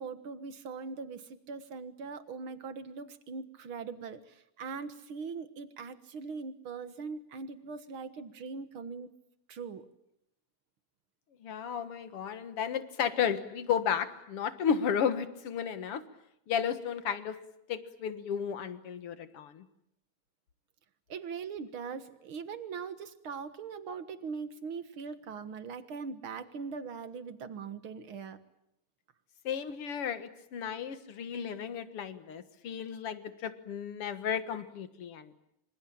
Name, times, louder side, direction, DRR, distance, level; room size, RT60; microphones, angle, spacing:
voice 1, 0.0-9.1 9.5-9.9 21.1-28.4, right 5 dB, 50° right, 12 dB, 1.9 m, -41 dB
voice 2, 11.4-16.0 16.5-17.4 17.7-19.6 29.4-35.3, left 8 dB, 50° left, 11 dB, 2.1 m, -33 dB
26.0 x 26.0 x 8.7 m, 0.79 s
omnidirectional pair, 3.7 m